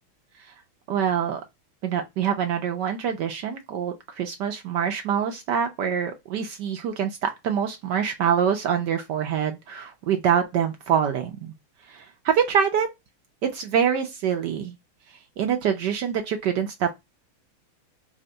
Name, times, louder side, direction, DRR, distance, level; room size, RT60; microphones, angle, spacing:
voice 1, 0.9-1.4 1.8-11.5 11.9-12.9 13.4-14.7 15.4-16.9, right 8 dB, 70° right, 1.1 m, -25 dB
3.5 x 2.2 x 3.7 m
omnidirectional pair, 2.3 m